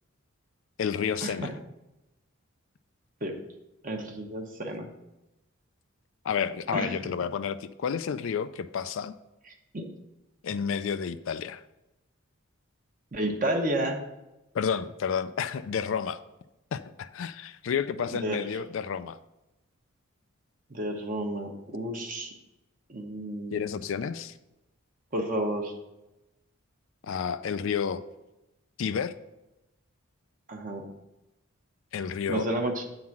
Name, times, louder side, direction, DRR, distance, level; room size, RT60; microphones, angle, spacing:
voice 1, 0.8-1.5 6.2-9.1 10.4-11.6 14.5-16.2 16.7-19.2 23.5-24.3 27.0-28.0 28.8-29.1 31.9-32.5, left 7 dB, 65° left, 12 dB, 0.4 m, -30 dB
voice 2, 3.8-4.9 6.7-6.9 9.7-9.9 13.1-14.0 18.1-18.5 20.7-22.3 22.9-23.7 25.1-25.7 30.5-30.9 32.3-32.8, right 1 dB, 40° right, 3 dB, 0.9 m, -31 dB
8.5 x 3.9 x 5.9 m, 0.94 s
head